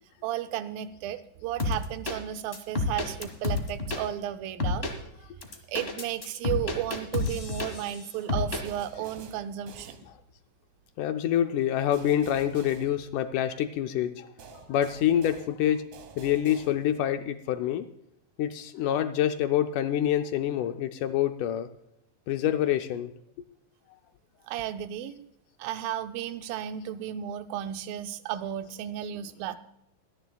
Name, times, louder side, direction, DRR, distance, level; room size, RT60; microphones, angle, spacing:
voice 1, 0.2-4.9 5.7-10.0 24.5-25.2 25.6-29.6, right 11 dB, 85° right, 9 dB, 2.5 m, -34 dB
sound 1, 1.6-2.2 2.5-4.0 4.6-4.9 5.4-8.0 8.3-8.6, left 3 dB, 45° left, 0.8 m, -29 dB
sound 2, 8.7-10.6 11.9-13.7 14.4-17.2, right 5 dB, 65° right, 2.3 m, -49 dB
voice 2, 11.0-15.8 16.2-17.9 18.4-21.7 22.3-23.1, left 11 dB, 80° left, 8 dB, 1.9 m, -27 dB
23.5 x 10.5 x 2.3 m, 0.77 s
omnidirectional pair, 4.0 m